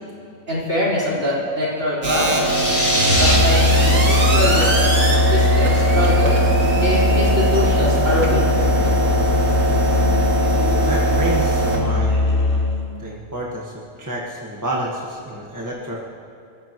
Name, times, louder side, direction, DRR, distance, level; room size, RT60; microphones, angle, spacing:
voice 1, 0.5-2.4 3.2-3.7 4.1-5.0 5.3-6.4 6.8-8.4, left 1 dB, 50° right, -7 dB, 5.4 m, -23 dB
sound 1, 2.0-11.8, right 2 dB, 85° right, 2.9 m, -21 dB
sound 2, 2.2-3.4, left 1 dB, 15° left, 3.3 m, -22 dB
Musical instrument, 3.1-12.9, left 2 dB, 40° left, 2.2 m, -19 dB
voice 2, 10.9-12.3 13.0-16.1, right 1 dB, 15° right, -4 dB, 1.6 m, -29 dB
28.5 x 14.5 x 3.1 m, 2.5 s
omnidirectional pair, 1.5 m